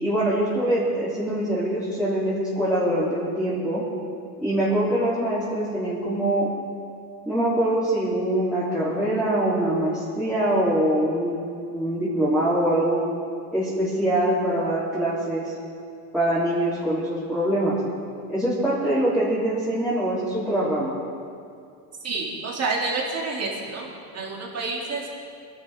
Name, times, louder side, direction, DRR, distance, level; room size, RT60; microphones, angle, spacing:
voice 1, 0.0-3.8 4.4-6.5 7.3-11.4 11.7-13.0 13.5-15.5 16.1-17.8 18.3-20.9, right 1 dB, ahead, -11 dB, 3.6 m, -23 dB
voice 2, 22.0-23.9 24.1-25.1, right 3 dB, 35° right, -2 dB, 3.2 m, -28 dB
21.5 x 11.5 x 3.8 m, 2.4 s
supercardioid pair, 120°, 45 cm